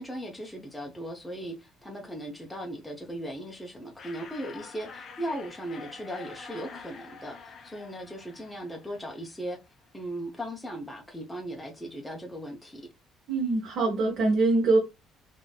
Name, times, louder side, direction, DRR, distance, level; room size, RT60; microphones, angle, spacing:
voice 1, 0.0-9.6 9.9-12.9, equal, 5° left, 0.6 m, -38 dB
sound 1, 4.0-9.5, left 5 dB, 45° left, 0.6 m, -47 dB
voice 2, 13.3-14.8, right 3 dB, 55° right, 1.0 m, -23 dB
3.6 x 2.6 x 2.2 m
cardioid pair, 140°, 0 cm